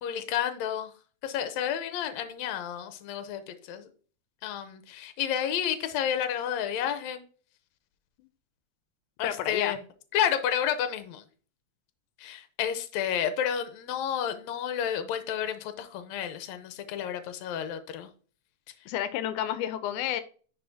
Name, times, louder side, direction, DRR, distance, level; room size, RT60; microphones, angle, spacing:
voice 1, 0.0-0.9 1.2-3.9 4.4-7.2 9.2-9.8 10.1-11.2 12.2-18.1, left 9 dB, 70° left, 2.0 m, -31 dB
voice 2, 9.2-9.8 18.9-20.2, left 11 dB, 90° left, 2.1 m, -30 dB
10.0 x 4.8 x 2.7 m
omnidirectional pair, 3.4 m